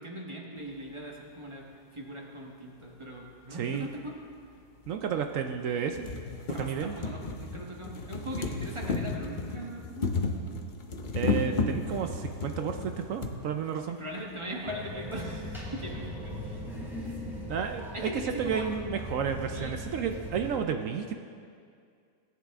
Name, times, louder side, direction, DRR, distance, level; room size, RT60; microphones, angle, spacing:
voice 1, 0.0-1.7 1.9-4.2 6.5-10.1 13.6-16.6 17.9-18.7 19.5-19.8, equal, 20° right, -1 dB, 1.1 m, -40 dB
voice 2, 3.5-3.9 4.9-6.1 6.6-7.0 11.1-14.0 17.4-21.1, right 7 dB, 70° right, 6 dB, 0.8 m, -32 dB
sound 1, 3.8-3.9 4.8-4.9 5.4-5.5 5.8-13.3 14.3-14.4 14.6-14.7, left 3 dB, 45° left, 0.6 m, -33 dB
sound 2, 14.6-20.6, left 1 dB, ahead, 2.7 m, -39 dB
17.5 x 9.0 x 3.6 m, 2.3 s
omnidirectional pair, 1.8 m